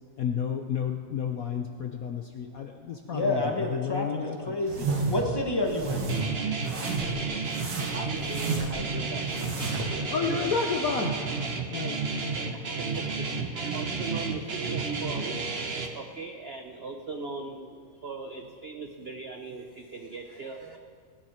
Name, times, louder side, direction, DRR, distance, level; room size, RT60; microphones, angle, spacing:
voice 1, 0.2-4.6 10.1-11.1 11.7-12.1, left 7 dB, 60° left, 4 dB, 0.9 m, -31 dB
voice 2, 3.1-4.1 4.5-6.0, left 1 dB, 15° left, 2 dB, 1.1 m, -29 dB
sound 1, 4.7-5.3 5.6-6.2 6.6-7.2 7.5-8.9 9.3-9.9, right 3 dB, 85° right, 2.7 m, -31 dB
Guitar, 6.1-15.9, right 4 dB, 40° right, 1.0 m, -31 dB
voice 3, 7.9-9.3 9.6-10.4 10.9-11.1 12.3-13.3 13.5-15.4 15.9-20.8, right 4 dB, 65° right, 4 dB, 0.6 m, -40 dB
20.0 x 10.5 x 4.3 m, 2.1 s
omnidirectional pair, 2.1 m